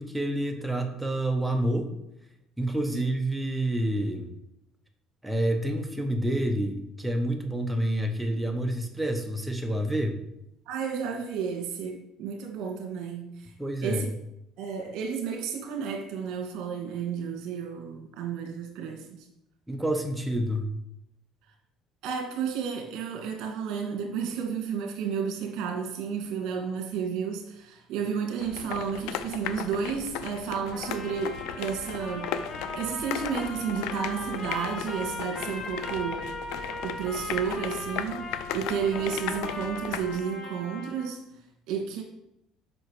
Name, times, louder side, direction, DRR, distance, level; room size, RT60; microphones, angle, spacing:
voice 1, 0.0-1.9 2.6-4.3 5.2-10.2 13.6-14.1 19.7-20.7, right 1 dB, 5° right, 3 dB, 0.9 m, -28 dB
voice 2, 10.7-13.5 13.8-14.1 14.6-19.3 22.0-32.3 32.7-36.3 36.8-42.0, right 6 dB, 70° right, 2 dB, 2.2 m, -32 dB
sound 1, 28.4-40.2, left 9 dB, 80° left, 0.5 m, -37 dB
Trumpet, 30.7-41.1, left 1 dB, 35° left, 1.5 m, -38 dB
7.9 x 5.7 x 4.8 m, 0.83 s
cardioid pair, 155°, 0 cm